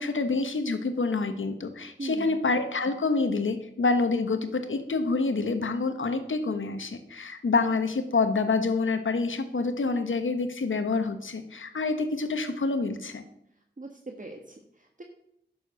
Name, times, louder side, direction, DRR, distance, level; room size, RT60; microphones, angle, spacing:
voice 1, 0.0-13.2, left 3 dB, 85° left, 8 dB, 1.3 m, -27 dB
voice 2, 2.0-2.4 13.8-15.0, right 2 dB, 40° right, 3 dB, 1.5 m, -40 dB
11.0 x 7.0 x 6.8 m, 0.78 s
cardioid pair, 40°, 20 cm